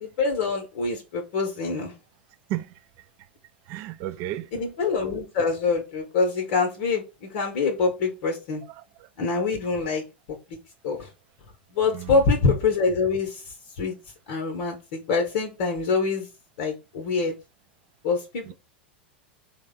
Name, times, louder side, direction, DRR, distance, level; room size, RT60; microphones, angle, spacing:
voice 1, 0.0-1.9 4.5-8.6 9.2-10.0 10.5-10.6 10.8-11.1 11.7-14.0 14.3-16.3 16.6-17.3 18.0-18.5, left 4 dB, 55° left, 0.7 m, -25 dB
voice 2, 3.7-4.5 8.8-9.1 11.9-12.2 18.5-18.6, right 13 dB, 45° right, 0.4 m, -33 dB
3.2 x 2.1 x 3.5 m
figure-of-eight pair, 85°, 6 cm